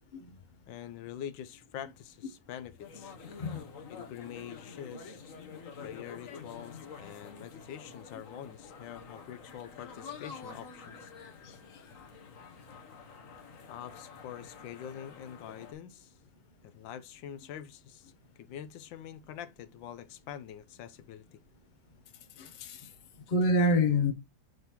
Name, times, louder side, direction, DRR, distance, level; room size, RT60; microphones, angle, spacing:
voice 1, 0.7-3.1 3.9-5.2 5.8-11.1 13.7-16.2 16.6-21.4, left 10 dB, 80° left, 1.4 m, -45 dB
sound 1, 2.8-15.7, left 5 dB, 50° left, 1.2 m, -48 dB
voice 2, 22.4-22.9 23.3-24.1, left 1 dB, 35° left, 0.8 m, -27 dB
9.4 x 3.9 x 2.9 m
omnidirectional pair, 2.0 m